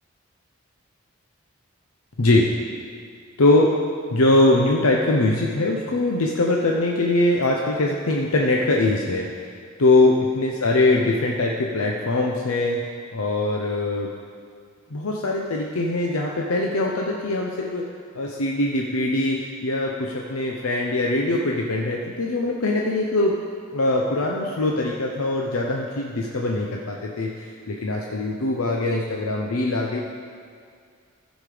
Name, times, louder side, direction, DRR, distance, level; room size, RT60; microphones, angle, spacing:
voice 1, 2.2-2.5 3.4-3.7 4.1-9.5 9.8-12.8 13.1-14.1 14.9-17.9 18.1-23.4 23.7-30.0, left 2 dB, 80° left, -1 dB, 0.8 m, -22 dB
15.0 x 5.2 x 5.0 m, 2.2 s
head